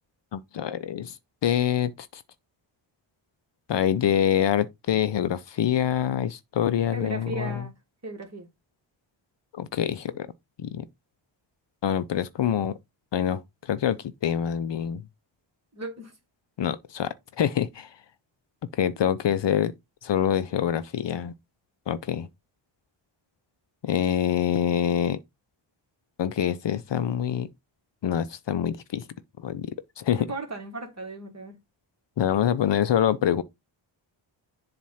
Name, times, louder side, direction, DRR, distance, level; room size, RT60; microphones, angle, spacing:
voice 1, 0.3-1.2 1.4-2.2 3.7-7.6 9.5-10.3 10.6-10.8 11.8-12.7 13.1-15.0 16.6-17.9 18.7-19.7 20.0-21.3 21.9-22.3 23.8-25.2 26.2-27.5 28.0-29.0 29.4-29.7 30.0-30.3 32.2-33.4, left 9 dB, 60° left, 0.6 m, -25 dB
voice 2, 6.9-7.7 8.0-8.5 15.7-16.1 30.3-31.6, right 2 dB, 35° right, 1.6 m, -36 dB
7.4 x 2.5 x 5.5 m
wide cardioid pair, 105°, 48 cm